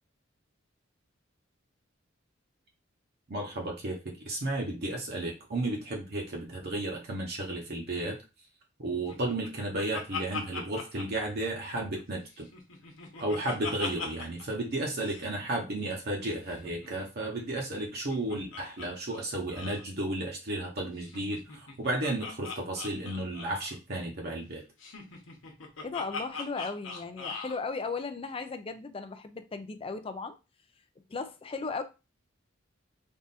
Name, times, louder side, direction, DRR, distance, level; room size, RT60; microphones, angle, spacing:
voice 1, 3.3-8.2 8.8-12.5 13.2-24.6, right 1 dB, 55° right, 0.9 m, -33 dB
Laughter, 9.1-12.0 12.4-14.5 14.7-14.8 15.0-15.3 16.5-18.9 19.1-19.2 19.5-19.8 21.0-23.8 24.8-27.6, left 4 dB, 90° left, 1.0 m, -41 dB
voice 2, 25.8-30.4 31.1-31.8, left 4 dB, 30° left, 0.4 m, -36 dB
3.5 x 2.5 x 4.1 m
head